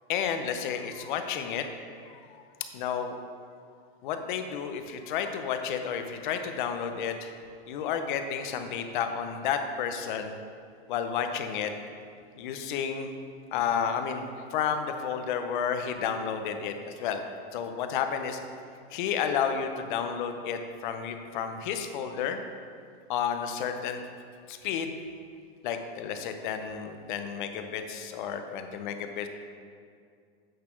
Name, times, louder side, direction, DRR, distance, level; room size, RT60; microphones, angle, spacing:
voice 1, 0.1-1.7 2.0-2.2 2.7-3.2 4.0-7.3 7.7-10.4 10.9-11.7 12.4-13.1 13.5-17.2 17.5-18.4 18.9-22.4 23.1-24.0 24.5-24.9 25.6-29.3, left 7 dB, 50° left, 7 dB, 0.8 m, -31 dB
9.3 x 4.1 x 5.9 m, 2.2 s
supercardioid pair, 160°, 32 cm